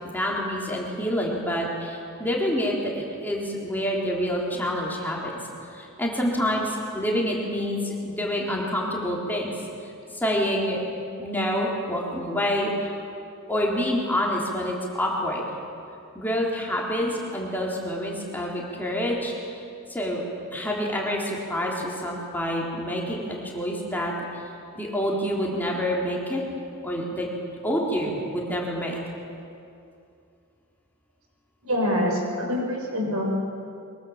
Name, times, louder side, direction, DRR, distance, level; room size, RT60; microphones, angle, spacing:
voice 1, 0.1-5.3 5.7-9.5 10.1-10.8 11.2-12.9 13.5-15.5 16.1-19.6 19.9-20.2 20.5-24.1 24.7-26.4 26.8-27.3 27.6-29.0, equal, 10° left, -3 dB, 3.7 m, -27 dB
voice 2, 31.6-33.3, equal, 85° right, 0 dB, 6.6 m, -25 dB
23.0 x 23.0 x 7.4 m, 2.5 s
head